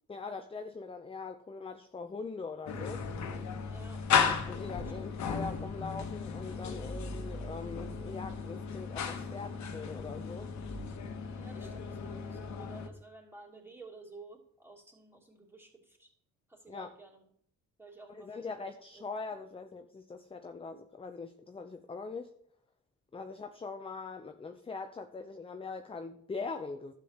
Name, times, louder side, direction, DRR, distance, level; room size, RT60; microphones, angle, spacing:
voice 1, 0.1-3.0 4.5-10.5 16.7-16.9 18.1-22.3 23.1-26.9, left 4 dB, 20° left, 7 dB, 0.6 m, -42 dB
sound 1, 2.7-12.9, left 6 dB, 65° left, 1.3 m, -35 dB
voice 2, 3.6-4.1 11.3-16.1 16.5-17.2 17.8-19.0, right 3 dB, 5° right, -4 dB, 3.0 m, -53 dB
12.0 x 8.3 x 3.0 m, 0.67 s
cardioid pair, 90°, 30 cm